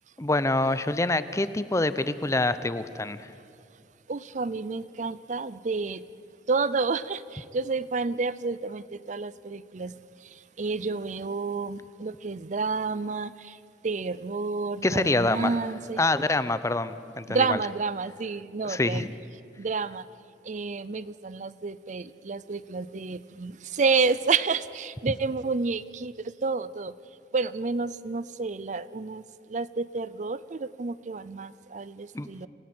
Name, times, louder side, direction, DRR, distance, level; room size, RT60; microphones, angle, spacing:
voice 1, 0.2-3.3 14.8-15.6 16.0-17.6 18.6-19.1 32.1-32.5, left 2 dB, 15° left, 14 dB, 0.7 m, -26 dB
voice 2, 4.1-6.0 6.5-13.6 13.8-16.0 17.3-19.0 19.6-20.0 20.4-26.9 27.3-29.2 29.5-32.5, right 4 dB, 45° right, 17 dB, 0.5 m, -30 dB
28.5 x 17.5 x 7.8 m, 2.4 s
head